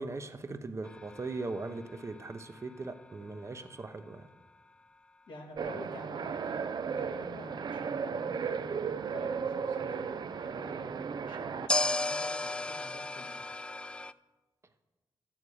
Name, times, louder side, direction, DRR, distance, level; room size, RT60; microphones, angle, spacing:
voice 1, 0.0-4.3, right 3 dB, 35° right, 8 dB, 0.8 m, -39 dB
sound 1, 0.8-3.9 11.7-14.1, left 2 dB, 10° left, 0.3 m, -35 dB
voice 2, 5.3-13.4, left 2 dB, 75° left, 1 dB, 2.1 m, -48 dB
sound 2, 5.6-11.7, right 6 dB, 60° right, 0.5 m, -35 dB
12.5 x 8.8 x 4.8 m, 1.2 s
cardioid pair, 80°, 8 cm